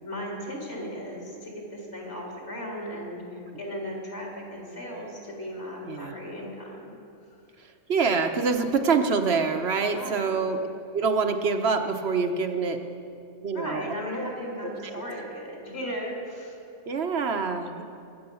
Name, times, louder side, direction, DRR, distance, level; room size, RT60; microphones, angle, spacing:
voice 1, 0.0-6.9 9.9-10.5 13.5-16.6, equal, 50° left, -3 dB, 3.9 m, -36 dB
voice 2, 5.9-6.2 7.9-10.7 10.9-12.8 13.4-14.3 14.8-15.0 16.9-17.8, right 5 dB, 50° right, 6 dB, 1.1 m, -26 dB
22.5 x 8.8 x 7.0 m, 2.5 s
omnidirectional pair, 1.4 m